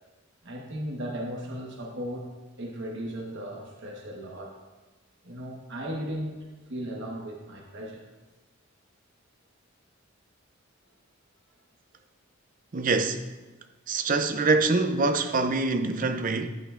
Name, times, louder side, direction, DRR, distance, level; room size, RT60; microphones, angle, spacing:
voice 1, 0.4-2.3 2.6-4.6 5.2-8.1, equal, 60° right, 1.2 m, -36 dB
voice 2, 12.7-13.2 13.9-16.5, right 3 dB, 40° right, 0.5 m, -25 dB
9.4 x 8.4 x 2.5 m
head